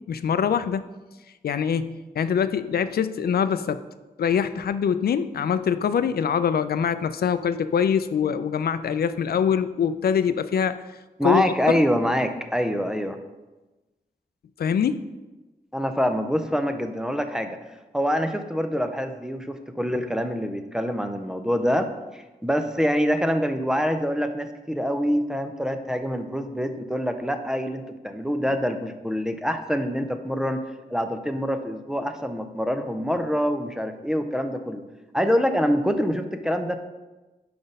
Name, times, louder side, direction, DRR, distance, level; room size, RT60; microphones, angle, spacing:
voice 1, 0.1-0.9 1.4-3.8 4.2-10.8 11.2-11.5 14.6-15.0, left 7 dB, 75° left, 12 dB, 0.4 m, -24 dB
voice 2, 11.2-13.2 15.7-17.6 17.9-30.6 30.9-34.8 35.1-36.8, equal, 5° right, 7 dB, 0.5 m, -25 dB
5.9 x 5.1 x 5.3 m, 1.1 s
wide cardioid pair, 130°, 16 cm